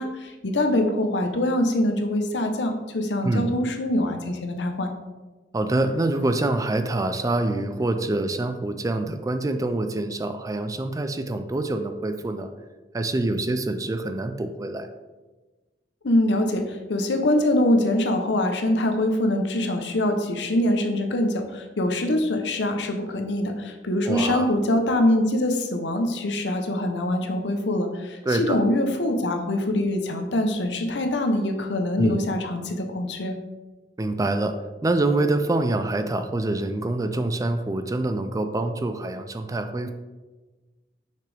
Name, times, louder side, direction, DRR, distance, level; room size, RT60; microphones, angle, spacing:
voice 1, 0.0-4.9 16.0-33.4, left 1 dB, 85° left, 5 dB, 0.8 m, -24 dB
voice 2, 5.5-12.5 12.9-14.9 24.1-24.5 28.2-28.6 32.0-32.3 34.0-34.6 34.8-39.9, right 2 dB, 20° right, 8 dB, 0.4 m, -25 dB
5.9 x 5.9 x 3.4 m, 1.2 s
head